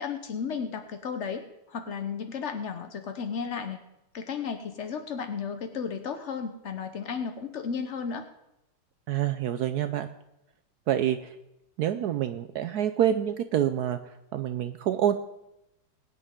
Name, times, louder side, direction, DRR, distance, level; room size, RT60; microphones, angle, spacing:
voice 1, 0.0-3.8 4.1-8.3, left 6 dB, 75° left, 7 dB, 0.6 m, -34 dB
voice 2, 9.1-10.1 10.9-11.3 11.8-14.0 14.3-15.1, right 10 dB, 90° right, 10 dB, 0.8 m, -27 dB
22.0 x 9.8 x 3.7 m, 0.89 s
omnidirectional pair, 2.3 m